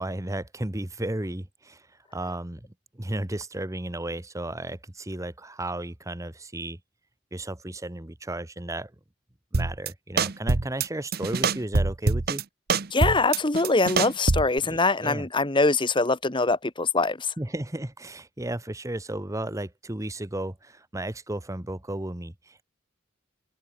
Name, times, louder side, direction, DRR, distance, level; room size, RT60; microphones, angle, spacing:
voice 1, 0.0-6.8 7.3-8.9 9.5-12.4 14.6-15.3 17.4-22.6, right 1 dB, 15° right, 1.1 m, -34 dB
sound 1, 9.5-9.9 10.2-10.9 11.1-12.4 12.7-14.6, right 3 dB, 55° right, 0.9 m, -24 dB
voice 2, 12.9-17.3, left 3 dB, 25° left, 1.4 m, -23 dB
open air
head